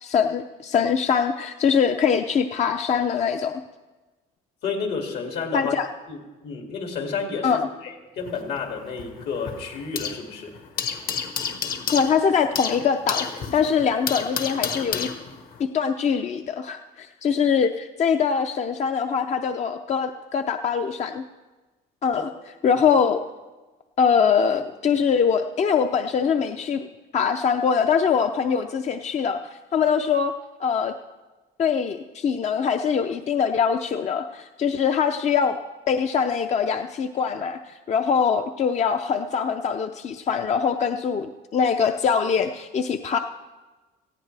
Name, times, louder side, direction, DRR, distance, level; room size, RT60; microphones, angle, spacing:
voice 1, 0.0-3.6 5.5-5.9 7.4-7.6 11.9-15.1 15.6-21.2 22.0-22.3 22.6-23.2 24.0-26.8 27.1-30.3 30.6-30.9 31.6-35.6 35.9-43.2, left 6 dB, 40° left, 7 dB, 0.5 m, -23 dB
voice 2, 4.6-5.7 6.1-10.5, left 5 dB, 75° left, 2 dB, 2.5 m, -31 dB
sound 1, 8.2-10.3 10.6-15.6, left 6 dB, 60° left, 1.3 m, -31 dB
18.0 x 14.5 x 3.4 m, 1.2 s
cardioid pair, 110°, 17 cm